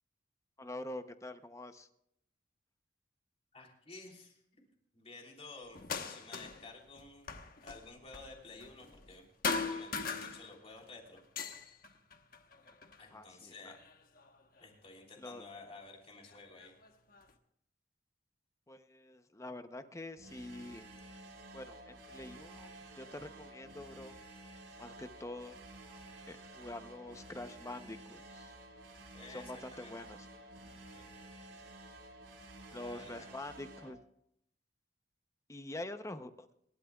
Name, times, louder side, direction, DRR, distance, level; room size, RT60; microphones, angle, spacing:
voice 1, 0.6-1.9 13.1-13.5 15.2-15.4 18.7-20.9 21.5-24.1 24.8-25.6 26.3-28.5 29.3-30.3 32.7-34.0 35.5-36.5, left 1 dB, 15° left, 9 dB, 0.7 m, -46 dB
voice 2, 3.5-4.4 4.9-5.8 6.0-7.3 7.6-9.2 9.5-11.2 13.0-13.8 14.6-16.7 29.1-29.9 30.9-31.1 32.7-33.3, left 3 dB, 30° left, 0 dB, 3.3 m, -52 dB
sound 1, 5.7-6.7 7.0-9.2 9.4-10.8 11.2-13.1 13.7-14.6 15.6-15.7 16.3-17.3, left 4 dB, 50° left, 1.2 m, -40 dB
sound 2, 20.2-33.9, right 2 dB, 85° right, 3.2 m, -52 dB
26.5 x 12.5 x 2.4 m, 0.74 s
head